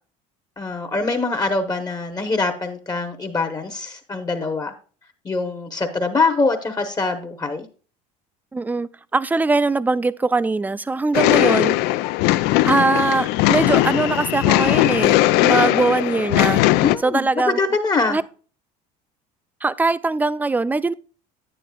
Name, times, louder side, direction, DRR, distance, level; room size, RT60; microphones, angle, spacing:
voice 1, 0.6-4.7 5.2-7.7 16.8-18.2, left 3 dB, 20° left, 1.0 m, -23 dB
voice 2, 8.5-11.7 12.6-16.6 17.0-17.6 18.1-18.2 19.6-20.9, right 3 dB, 10° right, 0.3 m, -21 dB
sound 1, 11.1-17.0, left 17 dB, 70° left, 0.4 m, -18 dB
10.0 x 8.9 x 2.3 m
supercardioid pair, 100°, 18 cm